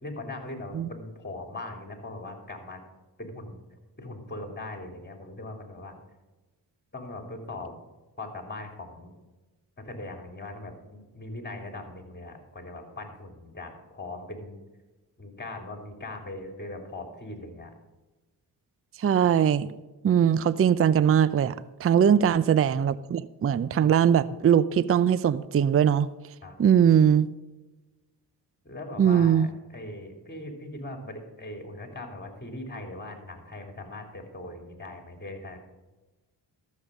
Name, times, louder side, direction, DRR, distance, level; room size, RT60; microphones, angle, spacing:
voice 1, 0.0-2.8 3.2-3.6 4.0-6.0 6.9-7.7 8.2-9.1 9.8-14.6 15.2-17.7 22.0-22.3 26.4-26.6 28.6-35.6, left 2 dB, 25° left, 4 dB, 3.1 m, -40 dB
voice 2, 19.0-19.7 20.0-21.5 21.8-26.1 26.6-27.3 29.0-29.5, right 8 dB, 35° right, 17 dB, 0.5 m, -21 dB
13.5 x 7.4 x 5.2 m, 1.1 s
cardioid pair, 55°, 42 cm